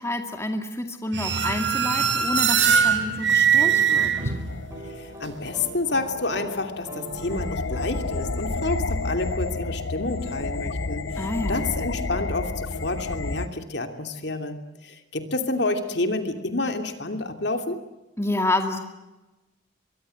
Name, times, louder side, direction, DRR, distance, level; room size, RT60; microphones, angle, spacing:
voice 1, 0.0-4.3 11.2-11.6 18.2-18.8, left 1 dB, 15° left, 4 dB, 2.1 m, -28 dB
sound 1, 1.1-4.7, right 7 dB, 60° right, 4.1 m, -21 dB
sound 2, 3.5-5.9 6.2-6.5 6.9-10.7, right 2 dB, 15° right, 7.3 m, -43 dB
sound 3, 4.5-13.5, left 3 dB, 75° left, 0.9 m, -31 dB
voice 2, 4.8-17.8, left 2 dB, 55° left, 6 dB, 2.8 m, -29 dB
25.5 x 23.0 x 7.9 m, 1.0 s
head